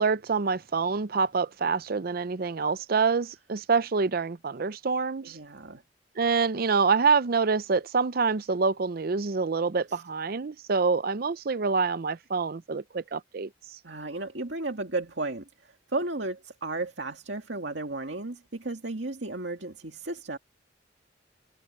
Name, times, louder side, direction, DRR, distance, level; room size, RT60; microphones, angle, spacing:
voice 1, 0.0-5.4 6.2-13.5, right 5 dB, 55° right, 0.6 m, -26 dB
voice 2, 5.2-5.8 9.9-10.0 13.8-20.4, right 2 dB, 70° right, 2.4 m, -34 dB
head